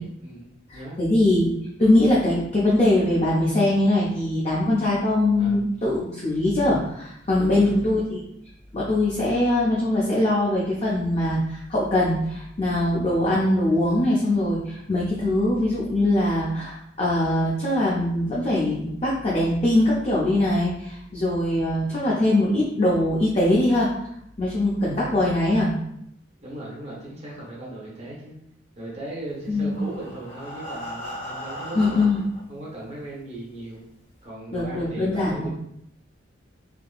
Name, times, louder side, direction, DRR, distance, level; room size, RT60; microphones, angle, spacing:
voice 1, 0.0-1.0 5.4-5.6 7.4-7.8 26.4-28.4 28.8-32.1 32.5-33.8 34.2-35.5, right 1 dB, 35° right, -6 dB, 0.8 m, -37 dB
voice 2, 0.7-1.5 1.8-8.2 8.7-23.9 24.4-25.7 29.5-29.8 31.7-32.2 34.5-35.5, left 1 dB, 30° left, -5 dB, 0.5 m, -22 dB
Breathing, 29.5-32.4 33.2-33.3 33.6-33.7 34.2-34.3, equal, 70° left, 1.3 m, -37 dB
3.5 x 2.7 x 2.3 m, 0.75 s
head